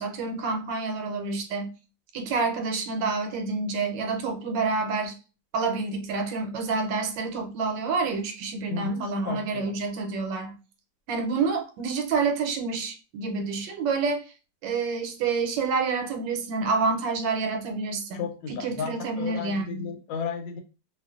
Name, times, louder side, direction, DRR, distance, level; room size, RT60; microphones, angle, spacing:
voice 1, 0.0-1.7 2.1-5.1 5.5-10.6 11.1-14.2 14.6-19.9, right 4 dB, 90° right, 1.3 m, -28 dB
voice 2, 8.7-9.7 18.1-20.6, left 5 dB, 90° left, 1.3 m, -34 dB
2.8 x 2.4 x 2.3 m
omnidirectional pair, 1.9 m